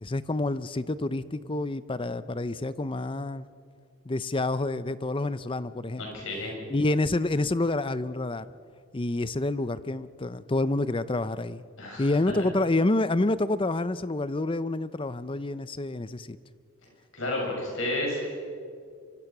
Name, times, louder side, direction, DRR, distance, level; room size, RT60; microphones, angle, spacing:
voice 1, 0.0-3.5 4.1-6.1 6.7-8.5 8.9-11.6 12.0-16.4, left 2 dB, 25° left, 15 dB, 0.6 m, -28 dB
voice 2, 6.0-6.5 11.8-12.1 17.1-18.3, left 1 dB, 60° left, -1 dB, 7.7 m, -31 dB
24.5 x 24.5 x 6.1 m, 2.2 s
head